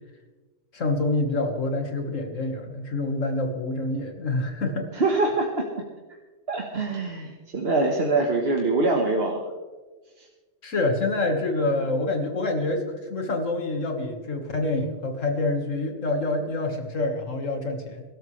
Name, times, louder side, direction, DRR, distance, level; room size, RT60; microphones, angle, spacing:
voice 1, 0.7-4.9 10.6-18.0, left 2 dB, 80° left, 3 dB, 2.1 m, -27 dB
voice 2, 4.9-5.6 6.5-9.4 10.2-10.3, right 3 dB, 55° right, 0 dB, 1.6 m, -24 dB
23.0 x 13.0 x 3.3 m, 1.3 s
omnidirectional pair, 1.3 m